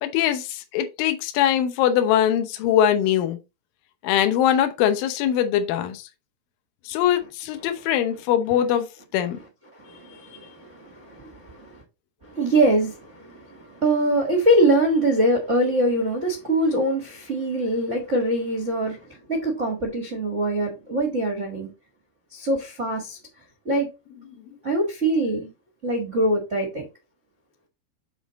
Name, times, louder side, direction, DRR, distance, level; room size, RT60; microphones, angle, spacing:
voice 1, 0.0-3.4 4.0-6.0 6.9-9.4, left 10 dB, 75° left, 2.4 m, -22 dB
voice 2, 7.5-8.0 8.5-8.7 9.2-11.8 12.2-21.7 22.3-23.2 23.6-23.9 24.6-25.5 25.8-26.9, right 1 dB, 75° right, 0.6 m, -24 dB
7.3 x 3.8 x 4.1 m
omnidirectional pair, 4.5 m